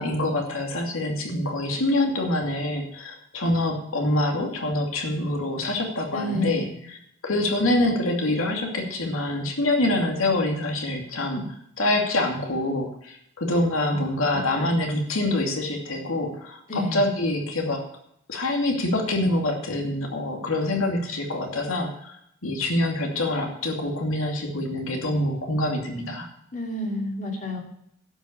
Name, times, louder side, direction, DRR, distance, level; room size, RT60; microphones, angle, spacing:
voice 1, 0.0-6.7 7.2-11.5 11.8-17.8 18.3-22.1 22.4-26.3, left 1 dB, 80° left, 2 dB, 2.6 m, -25 dB
voice 2, 6.1-6.7 13.9-14.0 14.3-14.7 16.7-17.0 26.5-27.6, left 1 dB, 35° left, 0 dB, 2.7 m, -30 dB
12.0 x 5.9 x 8.7 m, 0.74 s
head